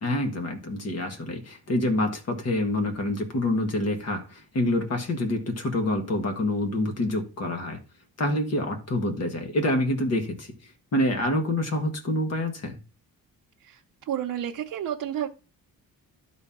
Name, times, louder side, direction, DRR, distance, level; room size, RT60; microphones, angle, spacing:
voice 1, 0.0-7.8 8.2-12.8, left 1 dB, 45° left, 1.7 m, -27 dB
voice 2, 14.1-15.3, right 10 dB, 70° right, 0.8 m, -30 dB
12.0 x 4.4 x 3.6 m
wide cardioid pair, 180°, 35 cm